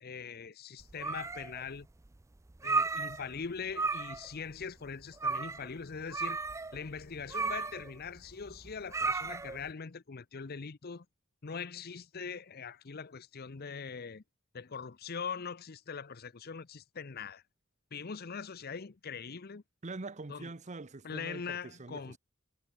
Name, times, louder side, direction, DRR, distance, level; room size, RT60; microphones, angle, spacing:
voice 1, 0.0-1.9 2.6-6.4 6.7-11.1 11.4-14.2 14.5-17.4 17.9-19.6 20.3-20.5 21.0-22.2, left 5 dB, 50° left, 0.7 m, -42 dB
sound 1, 0.8-1.7 2.0-2.1 2.5-3.4 3.7-4.3 4.6-4.7 5.2-5.7 6.1-9.7, right 3 dB, 15° right, 0.4 m, -34 dB
voice 2, 19.8-22.2, right 3 dB, 35° right, 0.8 m, -44 dB
head